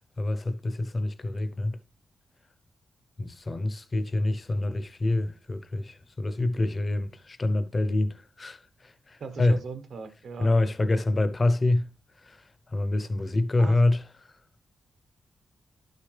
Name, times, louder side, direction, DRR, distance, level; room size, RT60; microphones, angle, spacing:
voice 1, 0.2-1.8 3.2-9.6 10.4-11.9 12.3-12.4 12.7-14.1, left 2 dB, 25° left, 0.7 m, -26 dB
voice 2, 9.2-10.5 13.6-13.8, right 4 dB, 60° right, 1.3 m, -39 dB
12.0 x 6.5 x 3.3 m
wide cardioid pair, 155°, 0 cm